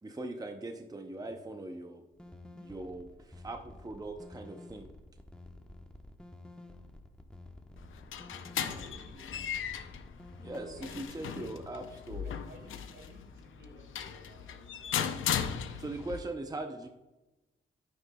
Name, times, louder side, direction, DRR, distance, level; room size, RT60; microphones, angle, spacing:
voice 1, 0.0-2.0 2.5-4.9 10.4-12.3 15.8-16.9, right 2 dB, 20° right, 5 dB, 0.7 m, -41 dB
sound 1, 2.1-11.0, left 2 dB, 5° left, 1.0 m, -51 dB
sound 2, 7.8-16.2, left 8 dB, 85° left, 0.6 m, -37 dB
voice 2, 8.6-9.5 10.6-11.8 12.2-14.9, right 1 dB, 70° right, 2 dB, 2.5 m, -54 dB
9.9 x 9.5 x 2.3 m, 1.1 s
cardioid pair, 75°, 20 cm